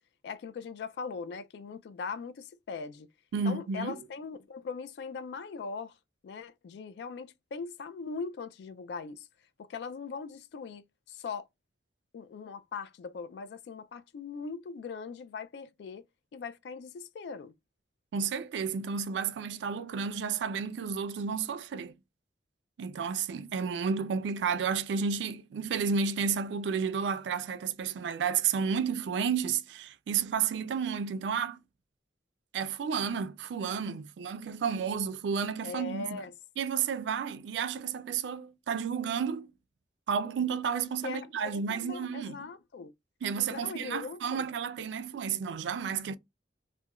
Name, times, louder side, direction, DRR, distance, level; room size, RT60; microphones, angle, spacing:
voice 1, 0.2-3.1 3.5-5.9 6.2-9.3 9.6-11.5 12.1-16.1 16.3-17.5 35.6-36.3 41.0-42.9 43.5-44.5, left 5 dB, 70° left, 0.3 m, -40 dB
voice 2, 3.3-4.0 18.1-22.0 22.8-31.6 32.5-36.2 36.6-39.5 40.1-42.4 43.2-46.2, right 6 dB, 80° right, 0.3 m, -31 dB
2.3 x 2.1 x 2.9 m
head